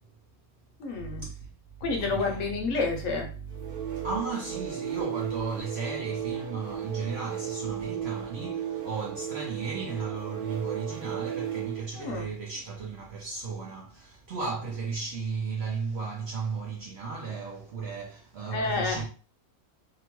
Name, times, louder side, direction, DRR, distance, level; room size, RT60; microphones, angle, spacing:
voice 1, 0.8-1.3 1.8-3.3 12.0-12.3 18.5-19.0, left 3 dB, 70° left, 0.9 m, -29 dB
voice 2, 2.0-2.5 4.0-19.1, right 4 dB, 65° right, 0.6 m, -35 dB
sound 1, 3.5-11.9, right 10 dB, 85° right, 1.2 m, -35 dB
2.8 x 2.1 x 2.9 m
omnidirectional pair, 1.5 m